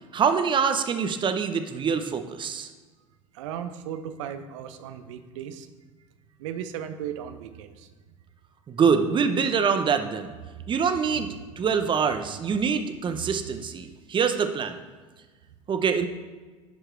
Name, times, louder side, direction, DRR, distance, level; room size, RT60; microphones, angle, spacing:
voice 1, 0.1-2.7 8.7-10.3 10.7-14.8 15.7-16.1, right 6 dB, 30° right, 8 dB, 0.8 m, -25 dB
voice 2, 3.3-5.7 6.4-7.9 10.6-10.7 12.5-12.6 13.2-13.6, right 9 dB, 65° right, 10 dB, 0.7 m, -36 dB
10.5 x 4.9 x 4.5 m, 1.4 s
hypercardioid pair, 75°, 17 cm